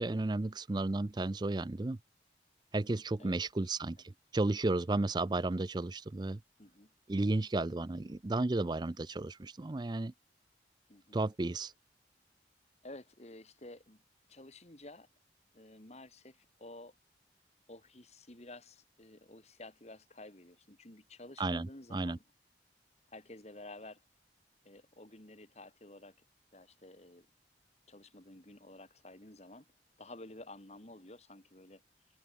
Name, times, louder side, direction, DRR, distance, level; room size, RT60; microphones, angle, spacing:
voice 1, 0.0-2.0 2.7-6.4 7.1-10.1 11.1-11.7 21.4-22.2, right 2 dB, 25° right, 0.4 m, -33 dB
voice 2, 6.6-6.9 8.0-8.1 10.9-11.2 12.8-14.0 14.3-15.1 15.5-17.0 17.7-22.2 23.1-24.0 24.6-26.2 26.5-27.3 27.9-29.7 30.0-31.8, left 2 dB, 40° left, 2.3 m, -52 dB
head